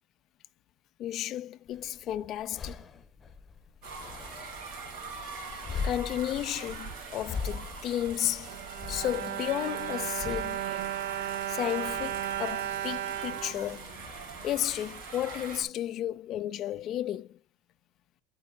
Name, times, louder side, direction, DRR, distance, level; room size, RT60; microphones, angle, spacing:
voice 1, 1.0-2.8 5.8-8.6 8.9-10.7 11.5-13.9 14.4-17.4, left 12 dB, 50° left, 0.4 m, -33 dB
sound 1, 1.7-14.7, left 5 dB, 25° left, 1.2 m, -42 dB
sound 2, 3.8-15.6, right 4 dB, 60° right, 3.0 m, -43 dB
Bowed string instrument, 8.2-14.5 15.2-15.3 15.6-15.7, right 11 dB, 75° right, 0.8 m, -35 dB
13.5 x 4.6 x 2.5 m
hypercardioid pair, 95°, 0 cm